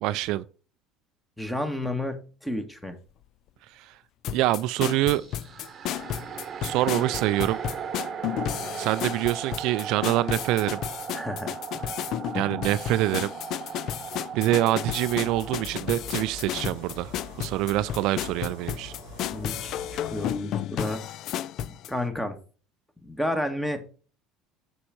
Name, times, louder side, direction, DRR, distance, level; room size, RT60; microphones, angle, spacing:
voice 1, 0.0-0.4 3.7-4.0 4.3-5.2 6.6-7.6 8.7-10.8 12.3-13.3 14.3-18.9, right 15 dB, 65° right, 0.4 m, -25 dB
voice 2, 1.4-3.0 11.1-11.9 19.3-21.0 21.9-22.4 23.0-23.9, left 1 dB, 5° left, 1.8 m, -31 dB
sound 1, 4.2-21.9, left 11 dB, 60° left, 0.4 m, -33 dB
Icy Horror Sting, 5.1-15.6, right 7 dB, 40° right, 1.0 m, -37 dB
sound 2, 15.1-20.4, left 1 dB, 80° left, 5.0 m, -44 dB
6.8 x 6.3 x 4.3 m
hypercardioid pair, 70°, 0 cm